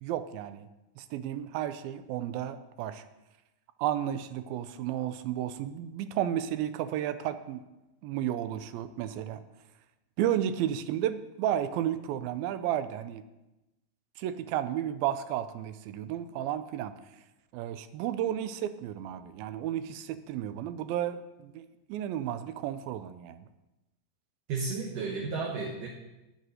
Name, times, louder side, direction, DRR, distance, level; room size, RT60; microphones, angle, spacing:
voice 1, 0.0-0.7 1.0-3.0 3.8-7.6 8.0-9.4 10.2-13.2 14.2-16.9 17.5-23.4, right 11 dB, 85° right, 12 dB, 2.4 m, -32 dB
voice 2, 24.5-25.9, right 4 dB, 70° right, -1 dB, 2.7 m, -33 dB
9.6 x 7.9 x 6.3 m, 1.0 s
omnidirectional pair, 4.2 m